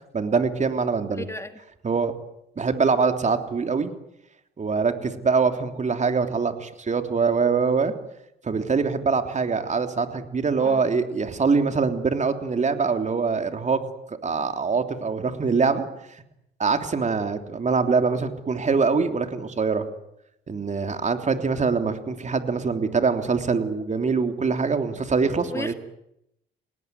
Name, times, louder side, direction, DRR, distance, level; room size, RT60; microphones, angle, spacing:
voice 1, 0.1-1.3 1.8-2.1 2.6-3.9 4.6-7.9 8.4-13.8 14.1-15.8 16.6-19.9 20.5-25.7, right 5 dB, 35° right, 7 dB, 3.3 m, -24 dB
voice 2, 1.1-1.5 10.6-10.8 25.4-25.7, left 2 dB, 15° left, 8 dB, 1.9 m, -34 dB
29.5 x 19.5 x 9.6 m, 0.82 s
cardioid pair, 90°, 20 cm